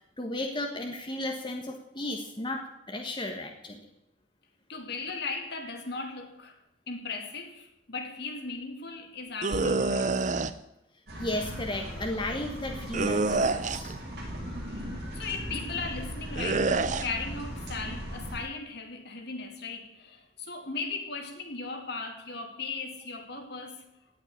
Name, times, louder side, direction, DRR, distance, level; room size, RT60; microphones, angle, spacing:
voice 1, 0.0-3.8 11.2-13.9, left 1 dB, 25° left, 1.5 m, -34 dB
voice 2, 4.7-6.6 6.9-10.2 14.7-23.8, left 4 dB, 60° left, 2.5 m, -37 dB
sound 1, 9.4-10.5 12.9-14.0 16.4-17.1, right 3 dB, 40° right, 0.7 m, -27 dB
sound 2, 11.1-18.4, equal, 55° right, 6.6 m, -38 dB
17.0 x 6.0 x 9.9 m
head